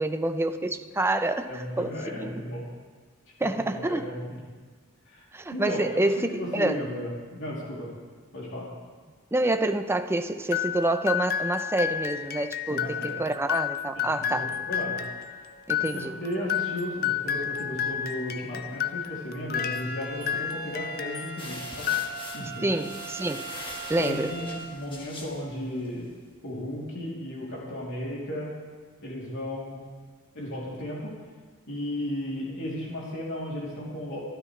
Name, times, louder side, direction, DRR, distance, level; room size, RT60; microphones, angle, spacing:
voice 1, 0.0-2.4 3.4-4.1 5.3-6.8 9.3-14.5 15.7-16.2 22.6-23.5 23.9-24.3, right 2 dB, 10° right, 8 dB, 0.6 m, -27 dB
voice 2, 1.4-2.7 3.4-4.4 5.1-5.2 5.5-7.9 8.3-8.7 12.7-13.2 13.9-15.0 15.8-22.1 22.3-22.9 24.0-26.1 26.4-28.5 29.0-29.8 30.3-31.1 31.7-34.2, left 1 dB, 60° left, -5 dB, 3.1 m, -35 dB
sound 1, 10.5-21.4 21.7-22.6, left 9 dB, 45° left, 0.5 m, -31 dB
sound 2, 19.6-24.6, right 5 dB, 75° right, 2.3 m, -41 dB
sound 3, 21.4-26.1, left 2 dB, 25° left, 1.7 m, -42 dB
25.0 x 12.5 x 3.3 m, 1.5 s
head